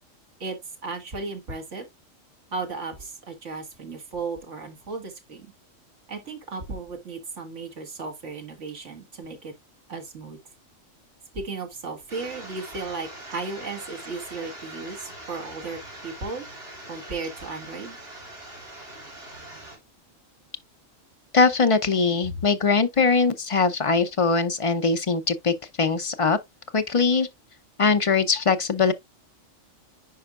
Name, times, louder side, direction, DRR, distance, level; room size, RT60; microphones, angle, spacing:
voice 1, 0.8-1.9 2.5-5.5 6.1-9.5 9.9-10.4 11.3-16.5 16.9-18.0, right 4 dB, 65° right, 2.0 m, -35 dB
sound 1, 12.1-19.8, right 1 dB, 45° right, 3.4 m, -42 dB
voice 2, 21.3-26.4 26.7-27.3 27.8-28.9, left 4 dB, 40° left, 0.5 m, -21 dB
10.5 x 4.4 x 2.4 m
omnidirectional pair, 1.4 m